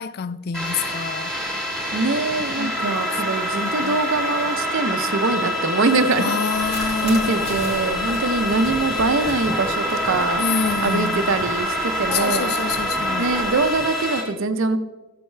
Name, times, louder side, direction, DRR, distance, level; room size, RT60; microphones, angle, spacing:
voice 1, 0.0-1.3 2.6-3.2 3.6-4.0 6.2-8.2 10.4-11.3 12.1-13.3, left 6 dB, 45° left, 0.3 m, -28 dB
sound 1, 0.5-14.2, equal, ahead, 2.6 m, -26 dB
sound 2, 1.8-14.0, left 3 dB, 75° left, 0.9 m, -40 dB
voice 2, 1.9-10.4 10.8-12.5 13.2-14.8, right 3 dB, 60° right, 0.7 m, -23 dB
sound 3, 6.5-13.8, equal, 30° left, 2.5 m, -35 dB
14.5 x 7.8 x 3.3 m
head